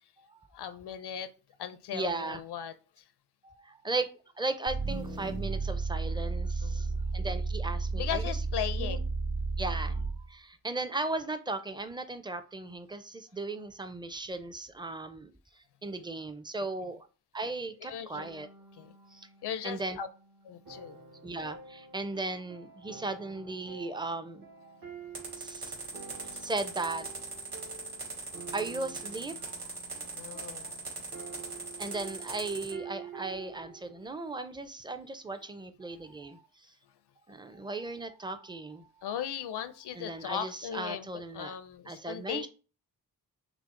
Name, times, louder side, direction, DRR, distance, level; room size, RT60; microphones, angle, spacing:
voice 1, 0.5-1.3 1.6-3.0 6.6-7.0 7.9-9.0 17.8-18.3 18.7-18.9 19.4-20.1 20.4-21.0 26.3-26.4 30.1-30.7 39.0-42.5, left 9 dB, 85° left, 13 dB, 0.6 m, -38 dB
voice 2, 1.9-2.4 3.4-4.1 4.4-6.9 7.1-8.3 8.8-9.0 9.6-15.3 15.8-17.0 17.3-18.5 19.1-19.3 19.6-20.0 21.2-24.8 25.4-25.8 26.2-27.0 28.5-29.5 31.8-36.4 37.3-38.9 39.9-41.6 41.9-42.5, right 3 dB, 10° right, 10 dB, 0.5 m, -37 dB
sound 1, 4.7-10.3, right 3 dB, 40° right, 1.6 m, -32 dB
sound 2, 18.1-34.1, right 6 dB, 60° right, 1.3 m, -49 dB
sound 3, 25.1-32.7, right 3 dB, 80° right, 2.2 m, -40 dB
5.9 x 2.0 x 3.7 m, 0.36 s
wide cardioid pair, 105°, 39 cm